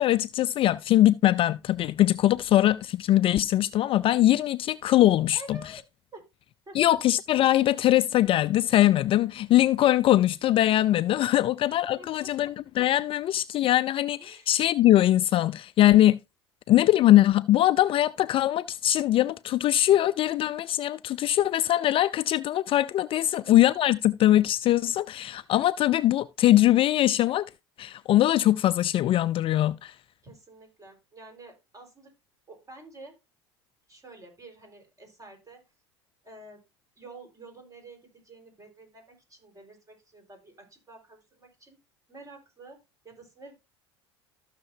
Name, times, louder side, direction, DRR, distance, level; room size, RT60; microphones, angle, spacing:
voice 1, 0.0-5.6 6.7-16.2 16.7-27.5 27.8-29.9, left 13 dB, 40° left, 0.4 m, -22 dB
voice 2, 5.3-5.8 6.1-6.2 6.7-7.0 11.3-11.5 12.0-12.3 14.2-14.5 23.2-23.5 30.2-32.1 32.5-33.2 33.9-35.7 36.2-36.6 37.0-41.8 42.1-42.8 43.0-43.6, right 2 dB, 25° right, 4.4 m, -49 dB
14.5 x 6.7 x 2.7 m
hypercardioid pair, 75°, 14 cm